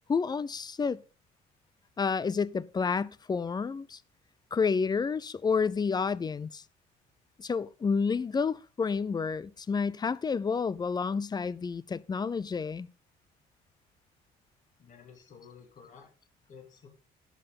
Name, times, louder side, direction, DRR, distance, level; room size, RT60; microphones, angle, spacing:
voice 1, 0.1-1.0 2.0-4.0 4.5-6.6 7.4-12.9, left 5 dB, 25° left, 0.5 m, -30 dB
voice 2, 14.8-16.1 16.5-16.9, left 6 dB, 45° left, 3.3 m, -52 dB
11.0 x 7.8 x 5.4 m
cardioid pair, 110°, 17 cm